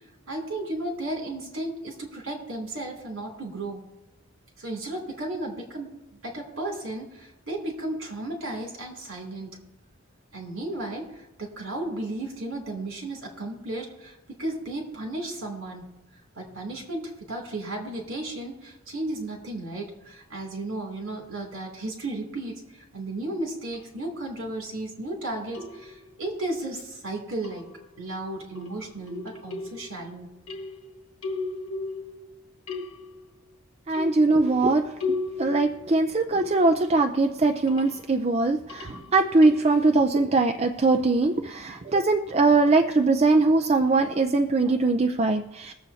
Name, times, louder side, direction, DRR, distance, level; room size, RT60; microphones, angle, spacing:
voice 1, 0.3-3.8 4.6-5.9 6.2-9.6 10.3-11.1 11.4-15.8 16.3-27.6 28.0-30.3, right 2 dB, 65° right, 0 dB, 2.9 m, -34 dB
sound 1, 23.7-23.8 25.5-26.2 27.4-28.0 28.6-30.1 30.5-32.4 32.7-33.3 33.9-36.9 37.4-38.0 38.7-39.8, left 3 dB, 70° left, 1.4 m, -36 dB
voice 2, 33.9-34.9 35.4-45.7, right 3 dB, 30° right, 5 dB, 0.5 m, -21 dB
22.0 x 7.5 x 2.8 m, 0.96 s
head